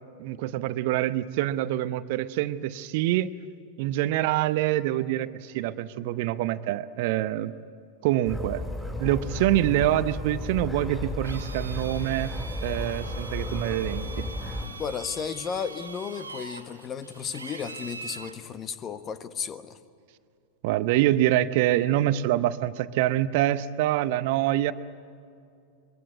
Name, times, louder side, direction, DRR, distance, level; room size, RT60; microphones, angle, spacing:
voice 1, 0.2-3.3 3.8-7.5 8.0-8.6 9.0-12.3 12.6-14.3 20.6-24.7, right 14 dB, 50° right, 14 dB, 0.7 m, -25 dB
sound 1, 8.2-14.7, left 1 dB, 5° left, 5.1 m, -34 dB
Drill, 11.2-18.4, right 3 dB, 80° right, 2.1 m, -43 dB
voice 2, 14.8-19.8, left 6 dB, 25° left, 13 dB, 1.2 m, -34 dB
23.0 x 22.5 x 9.6 m, 2.5 s
figure-of-eight pair, 90°, 0 cm